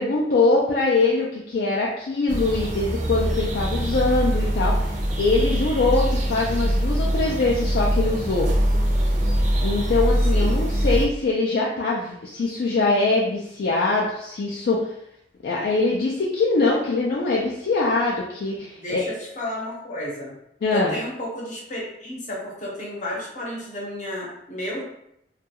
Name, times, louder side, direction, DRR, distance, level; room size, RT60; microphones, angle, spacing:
voice 1, 0.0-8.5 9.6-14.9 15.4-19.1 20.6-20.9, left 3 dB, 60° left, -4 dB, 0.4 m, -23 dB
sound 1, 2.3-11.1, equal, 40° right, 0.5 m, -23 dB
voice 2, 10.3-10.6 18.6-20.3 20.7-24.8, left 1 dB, 40° left, -4 dB, 0.8 m, -32 dB
2.3 x 2.2 x 2.8 m, 0.77 s
head